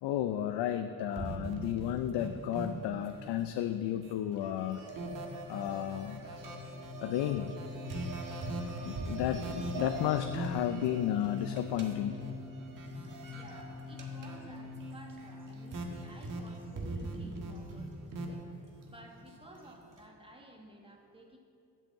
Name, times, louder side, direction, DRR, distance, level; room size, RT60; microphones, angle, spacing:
voice 1, 0.0-4.9 5.5-6.3 7.0-7.5 8.8-12.1, left 11 dB, 90° left, 8 dB, 0.5 m, -33 dB
sound 1, 1.1-3.5 3.8-20.0, right 2 dB, 50° right, 1.4 m, -42 dB
sound 2, 4.9-17.3, left 5 dB, 35° left, 0.5 m, -44 dB
voice 2, 13.3-21.4, right 1 dB, 15° right, 1 dB, 1.4 m, -55 dB
7.9 x 7.4 x 7.4 m, 2.7 s
cardioid pair, 120°, 40 cm